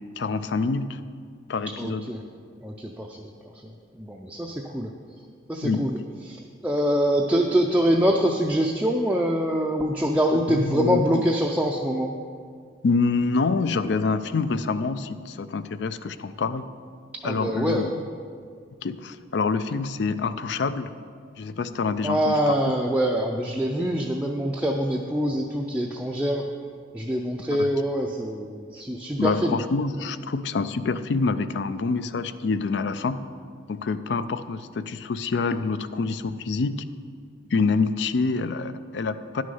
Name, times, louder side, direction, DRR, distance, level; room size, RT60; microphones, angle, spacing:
voice 1, 0.2-1.0 1.5-2.1 5.6-5.8 10.5-11.2 12.8-16.6 17.2-17.9 18.8-20.9 21.4-22.5 27.6-27.7 29.2-33.2 33.7-36.8 37.5-39.4, left 4 dB, 65° left, 13 dB, 0.4 m, -26 dB
voice 2, 1.8-2.2 2.6-3.3 3.6-4.9 5.5-6.0 6.3-12.2 17.2-17.9 22.0-26.5 26.9-29.6, equal, 10° right, -1 dB, 0.4 m, -24 dB
11.0 x 6.3 x 5.5 m, 2.1 s
head